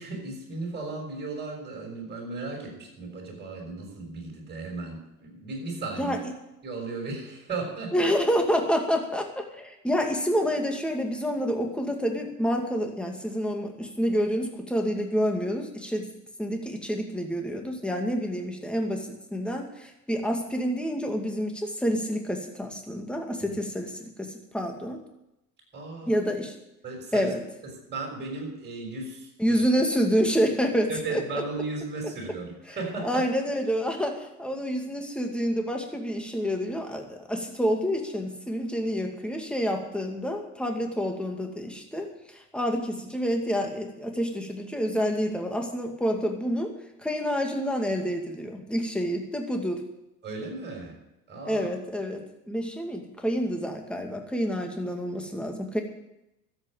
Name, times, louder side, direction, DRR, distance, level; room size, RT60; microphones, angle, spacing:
voice 1, 0.0-6.2 6.6-8.1 23.4-23.6 25.7-26.1 26.8-27.3 27.9-29.6 30.9-33.2 50.2-51.0 51.3-51.7, right 3 dB, 20° right, -1 dB, 6.2 m, -35 dB
voice 2, 6.0-6.3 7.9-16.1 16.4-25.0 26.1-26.6 27.1-27.4 29.4-31.4 33.0-46.7 47.0-49.8 51.5-55.8, equal, ahead, 3 dB, 2.3 m, -28 dB
13.0 x 8.2 x 8.9 m, 0.88 s
hypercardioid pair, 90°, 48 cm